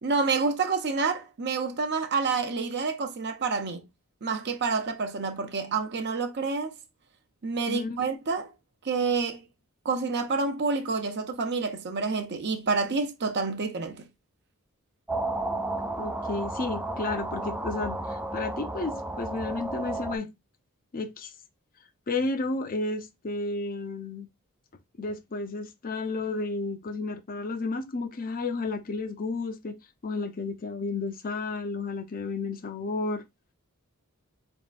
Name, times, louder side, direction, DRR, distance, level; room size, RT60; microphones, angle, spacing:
voice 1, 0.0-3.8 4.2-6.7 7.4-8.5 8.8-9.4 9.8-14.1, right 4 dB, 50° right, 0.7 m, -28 dB
sound 1, 15.1-20.2, right 2 dB, 5° right, 0.4 m, -32 dB
voice 2, 16.0-20.3 20.9-21.3 22.1-24.3 25.0-29.8 30.0-33.2, left 3 dB, 40° left, 0.6 m, -32 dB
4.2 x 3.5 x 2.4 m
head